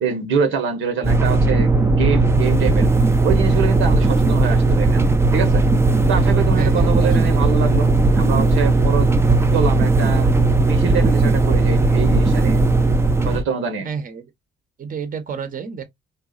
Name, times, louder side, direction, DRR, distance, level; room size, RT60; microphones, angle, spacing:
voice 1, 0.0-2.9 3.2-5.6 6.1-10.3 10.6-12.7 13.2-13.9, right 6 dB, 80° right, 1.0 m, -25 dB
sound 1, 1.0-13.4, right 3 dB, 15° right, 0.4 m, -16 dB
voice 2, 6.5-7.4 13.8-14.2 14.8-15.8, right 6 dB, 45° right, 0.9 m, -30 dB
3.8 x 2.4 x 2.4 m
cardioid pair, 90°, 20 cm